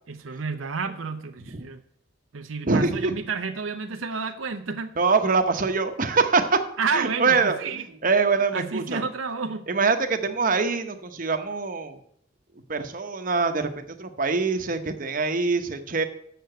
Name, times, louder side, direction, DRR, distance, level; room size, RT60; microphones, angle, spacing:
voice 1, 0.1-1.8 2.3-4.9 6.8-8.0 8.5-9.7, right 4 dB, 90° right, 0.7 m, -30 dB
voice 2, 2.7-3.1 5.0-6.6 6.9-7.6 8.0-9.0 9.7-12.0 12.7-16.0, right 4 dB, 45° right, 0.9 m, -24 dB
6.8 x 6.7 x 7.8 m
head